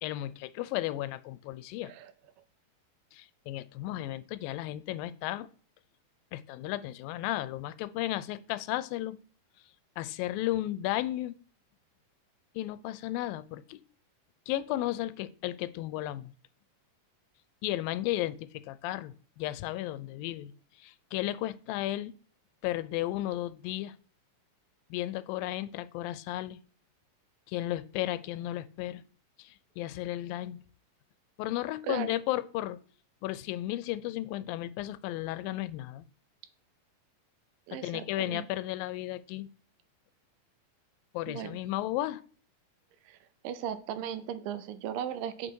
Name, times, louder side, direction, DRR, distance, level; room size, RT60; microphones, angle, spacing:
voice 1, 0.0-1.9 3.1-5.5 6.3-9.2 10.0-11.3 12.6-13.8 14.5-16.3 17.6-22.1 22.6-24.0 24.9-26.6 27.5-29.0 29.4-30.6 31.4-32.8 33.2-36.1 37.7-39.5 41.1-42.2, left 15 dB, 90° left, 15 dB, 2.3 m, -34 dB
voice 2, 37.7-38.4 41.3-41.6 43.1-43.2 43.4-45.5, right 9 dB, 80° right, 11 dB, 2.4 m, -37 dB
9.0 x 5.9 x 4.6 m, 0.42 s
omnidirectional pair, 4.0 m